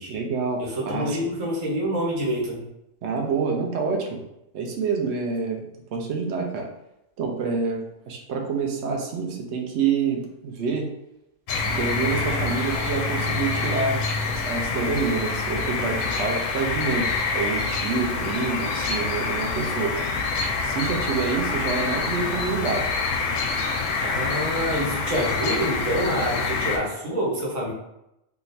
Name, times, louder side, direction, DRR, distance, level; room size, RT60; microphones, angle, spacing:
voice 1, 0.1-1.2 3.0-4.2 4.5-5.6 5.9-6.7 7.2-10.9 11.7-20.0 20.6-22.9, right 5 dB, 65° right, 1 dB, 0.9 m, -27 dB
voice 2, 0.6-2.6 24.0-27.7, equal, 85° right, -5 dB, 1.4 m, -27 dB
sound 1, 11.5-26.8, left 4 dB, 85° left, 0.9 m, -26 dB
3.7 x 2.4 x 2.7 m, 0.84 s
omnidirectional pair, 1.3 m